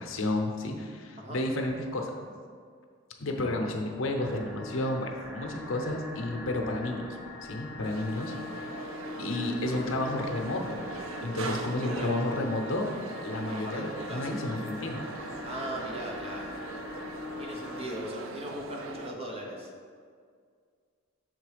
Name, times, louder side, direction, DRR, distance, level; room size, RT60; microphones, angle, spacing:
voice 1, 0.0-2.2 3.2-7.0 7.4-10.8 11.2-12.9 13.2-15.0, left 1 dB, 80° left, 2 dB, 0.8 m, -32 dB
sound 1, 4.2-17.9, left 2 dB, ahead, 0.8 m, -42 dB
sound 2, 7.8-19.1, right 3 dB, 80° right, 0.5 m, -41 dB
voice 2, 11.8-12.2 13.3-14.4 15.4-16.6 17.4-19.7, right 1 dB, 30° right, -1 dB, 0.9 m, -39 dB
6.6 x 3.8 x 5.0 m, 2.1 s
head